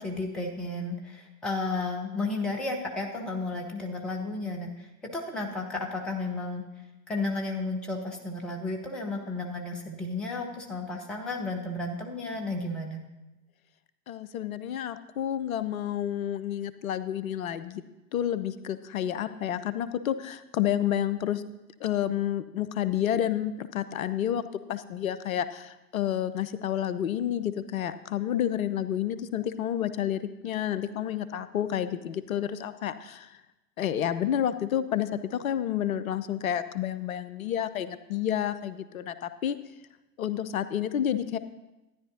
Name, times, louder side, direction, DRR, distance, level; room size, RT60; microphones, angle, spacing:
voice 1, 0.0-6.6 7.1-13.0, left 2 dB, ahead, 1 dB, 0.4 m, -33 dB
voice 2, 14.1-17.8 18.1-21.4 21.8-33.3 33.8-39.6 40.2-41.4, left 10 dB, 60° left, 13 dB, 0.6 m, -30 dB
12.5 x 9.9 x 2.6 m, 0.99 s
figure-of-eight pair, 90°, 47 cm